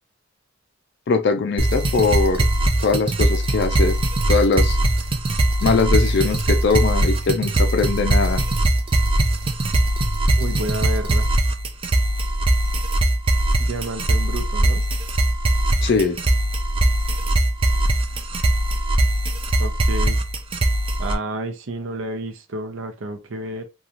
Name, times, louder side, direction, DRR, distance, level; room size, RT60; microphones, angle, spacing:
voice 1, 1.1-2.5 2.8-4.0 4.3-4.8 5.6-8.4 15.8-16.2, left 4 dB, 55° left, 0.4 m, -21 dB
sound 1, 1.6-21.1, right 1 dB, 25° right, 0.3 m, -20 dB
voice 2, 10.4-11.3 13.6-14.8 19.6-20.2 21.0-23.6, right 1 dB, 70° right, 0.6 m, -30 dB
2.9 x 2.3 x 2.4 m
head